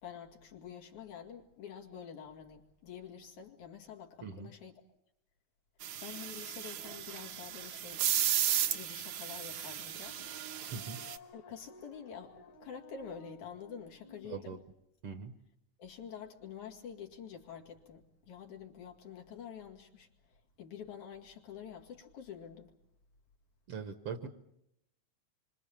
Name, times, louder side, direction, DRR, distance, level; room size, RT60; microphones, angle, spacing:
voice 1, 0.0-4.7 6.0-8.1 8.7-10.3 11.3-14.6 15.8-22.7, left 7 dB, 80° left, 2 dB, 3.8 m, -48 dB
sound 1, 5.8-11.2, right 10 dB, 75° right, 2.6 m, -35 dB
sound 2, 10.1-14.4, left 1 dB, 50° left, 2.2 m, -55 dB
voice 2, 10.6-11.0 14.3-14.6 15.0-15.4 23.7-24.3, right 6 dB, 60° right, 9 dB, 1.9 m, -41 dB
27.0 x 25.0 x 7.4 m, 0.78 s
omnidirectional pair, 3.4 m